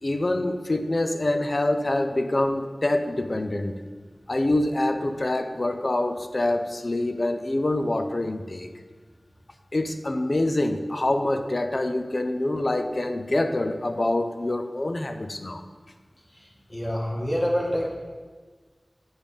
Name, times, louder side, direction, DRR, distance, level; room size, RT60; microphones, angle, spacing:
voice 1, 0.0-3.8 4.3-8.7 9.7-15.6, left 1 dB, 50° left, 7 dB, 0.6 m, -25 dB
voice 2, 16.3-17.9, equal, 30° left, -4 dB, 2.0 m, -27 dB
7.9 x 6.9 x 4.1 m, 1.5 s
wide cardioid pair, 60°, 0 cm